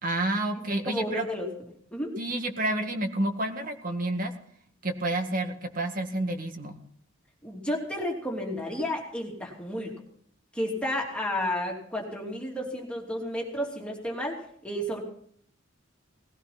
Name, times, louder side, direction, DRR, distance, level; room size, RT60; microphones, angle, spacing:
voice 1, 0.0-1.3 2.2-4.3 4.8-6.8, right 2 dB, 45° right, 5 dB, 1.9 m, -29 dB
voice 2, 0.5-1.5 1.9-2.2 7.4-9.9 10.5-15.0, left 1 dB, 5° left, -1 dB, 2.9 m, -32 dB
19.0 x 16.5 x 4.2 m, 0.64 s
head